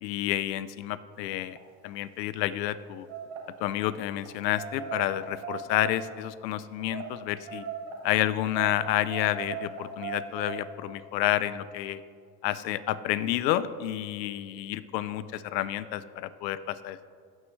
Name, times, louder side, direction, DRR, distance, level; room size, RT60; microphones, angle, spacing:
voice 1, 0.0-1.6 1.8-3.1 3.6-7.6 8.0-12.0 12.4-17.0, left 13 dB, 85° left, 15 dB, 0.5 m, -30 dB
sound 1, 1.3-1.7 2.3-2.5 3.0-3.4 4.1-6.2 6.8-7.1 7.5-8.0 8.5-10.6, right 7 dB, 65° right, 1.8 m, -38 dB
16.0 x 6.3 x 3.1 m, 2.2 s
hypercardioid pair, 70°, 49 cm